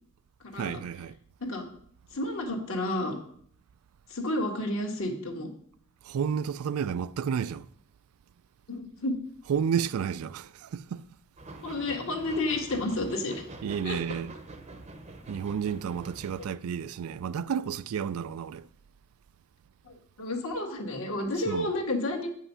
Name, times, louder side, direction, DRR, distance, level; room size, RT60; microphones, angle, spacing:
voice 1, 0.6-1.1 6.0-7.7 9.5-11.0 13.6-14.3 15.3-18.7 21.5-21.7, right 7 dB, 75° right, 0.3 m, -31 dB
voice 2, 2.1-3.2 4.1-5.5 8.7-9.2 11.6-13.3 13.8-14.0 19.9-22.3, left 2 dB, 65° left, 1.7 m, -31 dB
sound 1, 11.4-16.5, right 2 dB, 30° right, 0.8 m, -45 dB
8.3 x 5.6 x 5.5 m
head